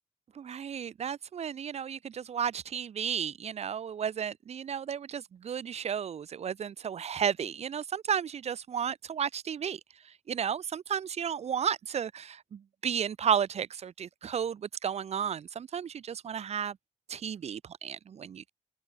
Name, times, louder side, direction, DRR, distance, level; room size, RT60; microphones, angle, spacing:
voice 1, 0.4-9.8 10.3-16.8 17.1-18.5, right 8 dB, 55° right, 3.9 m, -33 dB
open air
wide cardioid pair, 170°, 13 cm